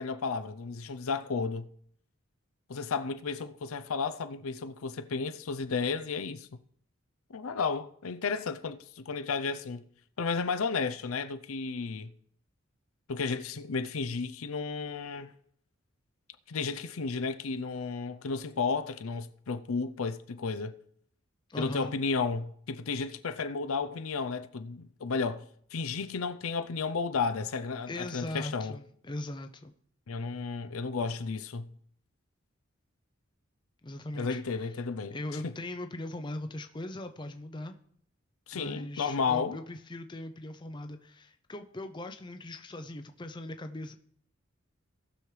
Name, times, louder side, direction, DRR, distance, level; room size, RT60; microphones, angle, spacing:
voice 1, 0.0-1.7 2.7-6.5 7.3-9.8 10.2-12.1 13.1-15.3 16.5-20.8 21.6-28.7 30.1-31.7 34.2-35.2 35.4-35.5 38.5-39.6, left 4 dB, 90° left, 0.6 m, -33 dB
voice 2, 21.5-21.9 27.8-29.7 33.8-34.7 35.1-37.8 38.5-44.0, left 1 dB, 20° left, 0.5 m, -40 dB
18.0 x 6.2 x 3.3 m
head